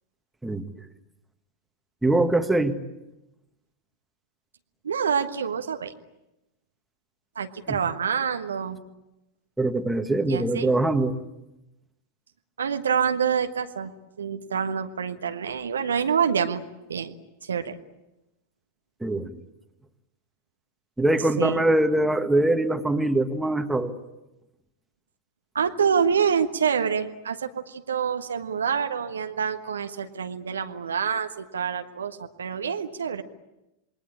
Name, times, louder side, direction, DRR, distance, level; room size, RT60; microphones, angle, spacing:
voice 1, 2.0-2.8 7.7-7.8 9.6-11.1 19.0-19.4 21.0-23.9, right 2 dB, 5° right, 6 dB, 1.9 m, -23 dB
voice 2, 4.8-5.9 7.3-8.8 10.3-10.7 12.6-13.9 14.2-16.6 16.9-17.1 17.4-17.8 21.4-21.6 25.5-33.2, right 7 dB, 70° right, 8 dB, 1.3 m, -26 dB
27.5 x 22.0 x 8.7 m, 0.95 s
figure-of-eight pair, 90°, 0 cm